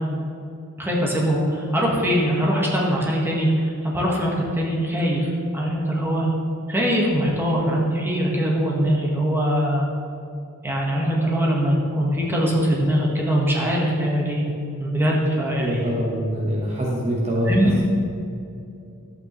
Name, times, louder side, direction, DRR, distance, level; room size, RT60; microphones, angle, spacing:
voice 1, 0.8-6.3 6.7-9.9 10.6-14.4 14.8-15.8 17.5-17.7, equal, 10° right, -3 dB, 1.5 m, -22 dB
voice 2, 15.6-17.8, equal, 30° right, -4 dB, 1.2 m, -24 dB
12.0 x 8.3 x 3.2 m, 2.6 s
head